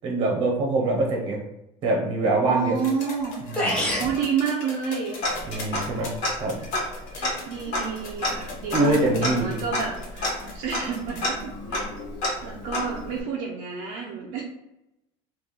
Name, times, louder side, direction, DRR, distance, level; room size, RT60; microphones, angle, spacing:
voice 1, 0.0-1.4 1.8-2.8 3.5-3.9 5.5-6.1 6.4-6.6 8.7-9.6, right 2 dB, 40° right, 0 dB, 1.0 m, -24 dB
voice 2, 2.5-3.4 4.0-5.2 6.6-6.7 7.1-11.9 12.4-14.4, right 6 dB, 60° right, -2 dB, 0.6 m, -30 dB
sound 1, 2.8-11.4 12.6-12.7, left 3 dB, 80° left, 1.2 m, -40 dB
sound 2, 3.6-4.1, left 1 dB, 5° left, 0.8 m, -25 dB
Tick-tock, 5.2-6.0 6.2-6.3 6.7-13.2, left 1 dB, 55° left, 1.4 m, -30 dB
3.3 x 2.5 x 4.0 m, 0.86 s
cardioid pair, 175°, 14 cm